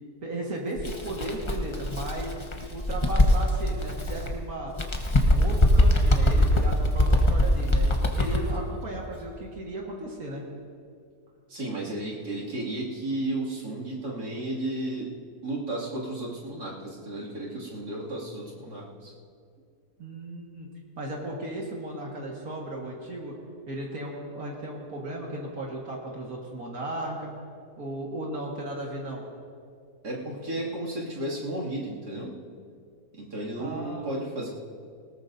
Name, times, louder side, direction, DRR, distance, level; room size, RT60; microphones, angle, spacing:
voice 1, 0.2-2.3 2.7-4.7 5.2-10.4 20.0-20.7 21.0-23.4 23.7-27.3 27.8-29.2 33.6-34.1, right 1 dB, 65° right, -2 dB, 2.2 m, -35 dB
Bird, 0.8-4.3 4.7-8.6, left 1 dB, 25° left, 0.9 m, -22 dB
voice 2, 11.5-15.1 15.4-19.1 30.0-32.3 33.1-34.5, right 1 dB, 80° right, -5 dB, 3.1 m, -33 dB
19.5 x 18.5 x 2.7 m, 2.3 s
omnidirectional pair, 1.7 m